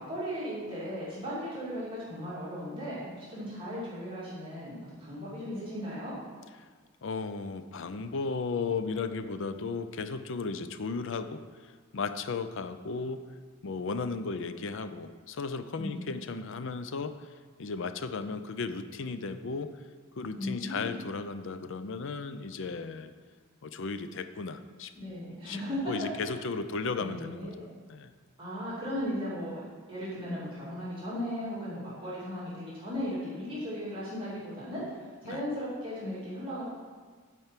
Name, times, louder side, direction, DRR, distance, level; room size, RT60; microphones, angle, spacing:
voice 1, 0.0-6.1 15.8-16.1 20.4-20.9 25.0-25.9 27.0-27.7 28.4-29.6 29.9-34.8 35.2-36.6, equal, 25° right, -9 dB, 2.6 m, -36 dB
voice 2, 7.0-13.2 13.6-17.1 17.6-19.7 20.2-23.1 23.6-24.9 25.4-27.5 27.9-28.1 35.2-35.4, left 4 dB, 65° left, 11 dB, 0.5 m, -35 dB
8.8 x 4.6 x 7.5 m, 1.5 s
head